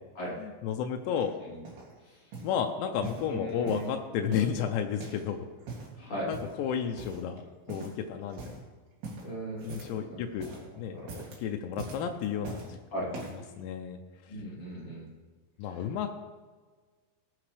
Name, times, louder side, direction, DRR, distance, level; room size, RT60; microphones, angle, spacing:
voice 1, 0.4-1.4 2.4-5.4 6.2-8.4 9.6-10.5 10.8-11.1 11.4-12.8 13.0-13.3 13.6-14.0 15.6-16.1, left 8 dB, 90° left, 4 dB, 3.0 m, -32 dB
voice 2, 1.1-1.6 2.0-2.3 3.2-3.9 6.0-6.3 9.2-10.6 10.9-11.2 12.9-13.1 14.3-15.1 15.6-16.1, right 1 dB, 35° left, -6 dB, 4.1 m, -39 dB
sound 1, 1.2-1.9 2.3-2.6 3.0-3.9 4.3-5.3 5.6-6.0 6.3-6.6 7.0-7.4 7.7-8.0 8.3-8.6 9.0-10.0 10.3-10.7 11.0-11.4 11.8-12.7 13.1-13.5 14.1-14.2, right 3 dB, 65° right, 4.3 m, -43 dB
20.0 x 8.3 x 3.3 m, 1.4 s
omnidirectional pair, 4.9 m